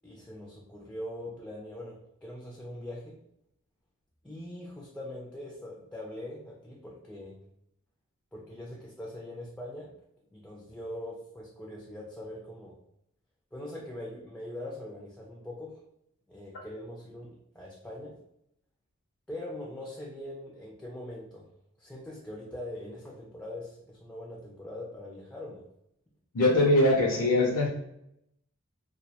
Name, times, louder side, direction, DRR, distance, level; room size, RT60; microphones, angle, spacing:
voice 1, 0.0-3.2 4.2-7.4 8.3-9.9 10.3-12.8 13.5-15.8 16.3-18.1 19.3-21.5 21.8-25.6, left 1 dB, 5° left, -3 dB, 0.3 m, -42 dB
voice 2, 26.3-27.7, left 1 dB, 75° left, -2 dB, 0.4 m, -22 dB
2.2 x 2.0 x 2.7 m, 0.77 s
head